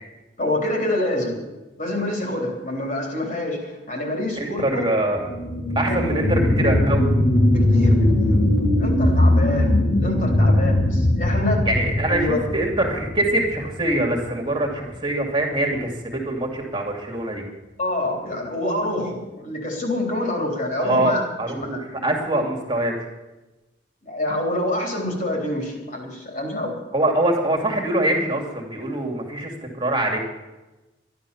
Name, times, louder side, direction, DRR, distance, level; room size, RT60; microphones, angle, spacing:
voice 1, 0.4-1.4 1.8-4.8 5.9-6.1 7.5-11.7 12.1-12.4 17.8-21.2 21.6-21.8 24.0-26.8, left 1 dB, 45° left, 1 dB, 3.7 m, -27 dB
voice 2, 4.4-5.3 5.8-7.1 11.7-17.4 20.8-23.1 26.9-30.2, right 1 dB, 25° right, 0 dB, 2.4 m, -23 dB
sound 1, 5.1-14.2 14.7-14.8, left 1 dB, 80° left, 3.2 m, -20 dB
12.5 x 11.5 x 7.1 m, 1.1 s
head